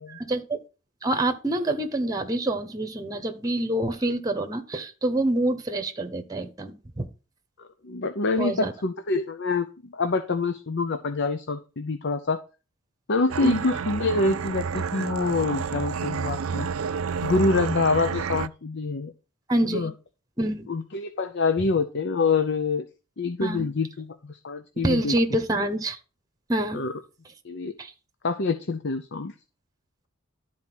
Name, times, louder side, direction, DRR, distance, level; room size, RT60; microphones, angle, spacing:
voice 1, 0.2-0.6 1.0-7.1 8.4-8.7 13.4-13.7 19.5-19.9 20.4-20.7 23.4-23.7 24.8-26.0 26.5-26.8 27.8-27.9, right 1 dB, 15° right, 7 dB, 1.0 m, -26 dB
voice 2, 7.6-12.4 13.1-16.7 17.2-19.1 19.7-19.9 20.7-22.8 23.2-25.1 26.7-26.9 27.4-27.7 28.2-29.3, left 3 dB, 55° left, 9 dB, 0.7 m, -26 dB
sound 1, 13.3-18.5, right 6 dB, 75° right, 0.5 m, -30 dB
12.0 x 4.3 x 6.1 m, 0.33 s
head